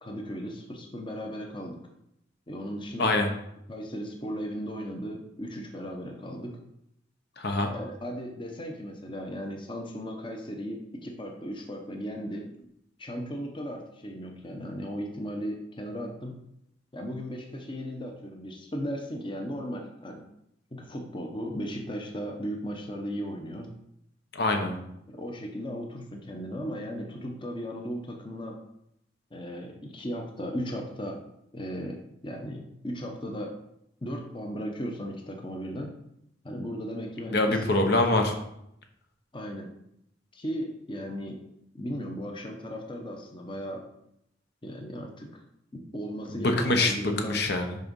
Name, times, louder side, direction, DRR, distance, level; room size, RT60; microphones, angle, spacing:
voice 1, 0.0-1.8 2.5-3.3 3.7-6.6 7.7-12.5 13.0-16.4 16.9-20.3 20.7-23.7 24.6-28.6 29.3-31.2 31.5-33.5 34.0-36.0 36.4-38.0 39.3-39.7 40.3-41.4 41.7-43.8 44.6-45.3 45.7-47.4, equal, 25° left, 2 dB, 0.9 m, -36 dB
voice 2, 7.4-7.7 24.3-24.7 37.3-38.3 46.4-47.8, left 2 dB, 60° left, 4 dB, 1.0 m, -24 dB
6.6 x 5.2 x 5.4 m, 0.78 s
head